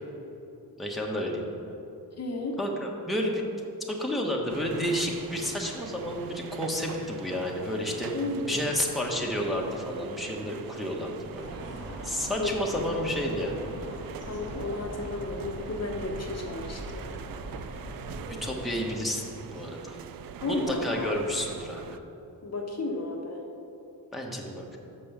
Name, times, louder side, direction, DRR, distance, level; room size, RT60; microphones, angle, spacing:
voice 1, 0.8-1.5 2.6-3.4 3.9-8.1 8.4-11.5 12.0-13.5 18.4-19.2 19.5-20.0 20.5-22.0 24.1-24.8, equal, ahead, -2 dB, 1.1 m, -31 dB
voice 2, 2.2-2.6 8.1-8.7 12.4-13.1 14.2-17.0 20.4-21.3 22.4-23.4, left 2 dB, 40° left, 1 dB, 1.0 m, -33 dB
sound 1, 4.5-22.0, right 8 dB, 60° right, 0.5 m, -43 dB
sound 2, 11.3-18.9, equal, 30° right, 1.8 m, -41 dB
6.8 x 5.5 x 6.8 m, 2.8 s
cardioid pair, 95°, 39 cm